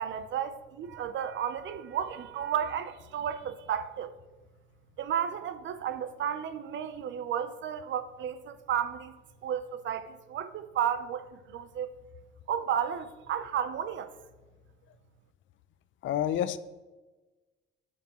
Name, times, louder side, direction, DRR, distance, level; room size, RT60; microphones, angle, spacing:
voice 1, 0.0-4.2 5.0-9.1 9.4-11.9 12.5-14.1, right 9 dB, 70° right, 0.6 m, -33 dB
voice 2, 16.0-16.6, left 10 dB, 75° left, 0.5 m, -28 dB
15.0 x 5.8 x 3.0 m
cardioid pair, 90°, 20 cm